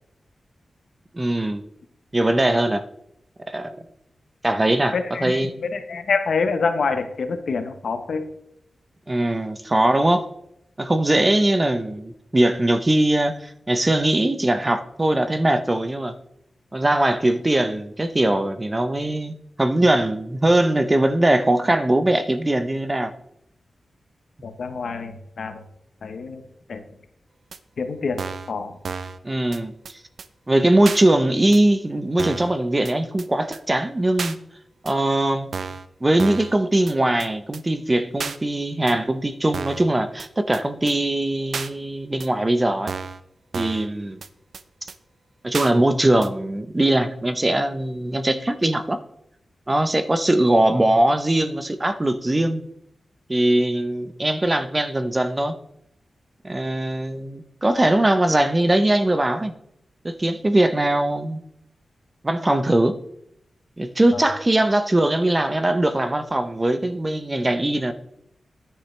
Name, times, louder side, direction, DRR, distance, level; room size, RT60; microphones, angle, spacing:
voice 1, 1.1-1.6 2.1-2.8 3.5-3.7 4.4-4.9 5.2-5.6 9.1-10.3 10.8-16.1 16.7-23.1 29.2-29.7 30.5-34.4 34.8-35.5 36.0-42.9 43.5-44.2 44.8-44.9 45.4-49.0 49.7-52.6 53.3-55.5 56.4-59.5 60.0-61.4 62.2-63.0 63.8-67.9, right 1 dB, 25° right, 0.8 m, -21 dB
voice 2, 4.9-8.3 24.4-25.6 26.0-26.8 27.8-28.2 28.5-28.8 64.1-64.2, left 4 dB, 75° left, 1.1 m, -26 dB
sound 1, 27.5-27.6 28.2-28.5 28.8-29.2 29.5-29.6 29.8-29.9 30.2-30.3 30.8-31.0 31.5-31.6 32.2-32.5 32.8-32.9 33.2-33.3 33.5-33.6 34.2-34.4 34.9-35.0 35.5-35.9 36.2-36.5 36.9-37.0 37.2-37.3 37.5-37.6 38.2-38.4 38.9-39.0 39.5-39.9 40.2-40.3 40.5-40.6 40.9-41.0 41.5-41.7 42.2-42.3 42.9-43.2 43.5-43.9 44.2-44.3 44.5-44.6 44.9-45.0 45.5-45.7 46.2-46.3, right 5 dB, 75° right, 0.5 m, -31 dB
10.0 x 9.1 x 3.3 m
cardioid pair, 55°, 0 cm